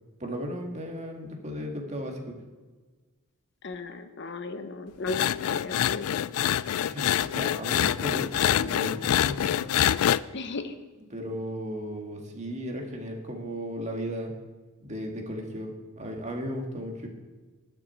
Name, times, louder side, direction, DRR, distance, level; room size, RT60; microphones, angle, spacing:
voice 1, 0.2-2.3 6.8-8.3 8.6-9.6 11.1-14.3 14.8-17.1, equal, 30° right, 2 dB, 1.9 m, -35 dB
voice 2, 3.6-6.1 10.3-10.7, left 3 dB, 55° left, 8 dB, 0.8 m, -35 dB
sound 1, 5.1-10.2, left 10 dB, 85° left, 0.3 m, -25 dB
19.5 x 6.7 x 4.4 m, 1.3 s
head